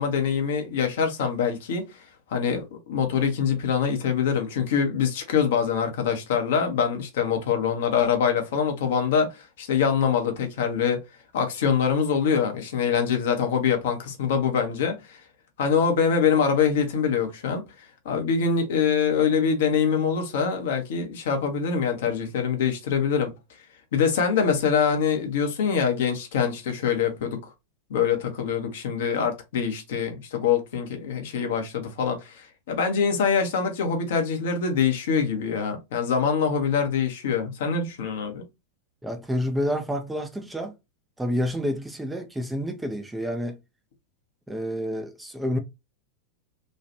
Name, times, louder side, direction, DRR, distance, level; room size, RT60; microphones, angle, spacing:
voice 1, 0.0-1.8 2.3-11.0 11.3-15.2 15.6-17.6 18.0-23.3 23.9-27.4 27.9-38.4, left 6 dB, 55° left, 0.8 m, -24 dB
voice 2, 39.0-40.7 41.2-43.6 44.5-45.6, equal, 5° right, 0.5 m, -29 dB
3.1 x 2.4 x 2.7 m
figure-of-eight pair, 90°, 0 cm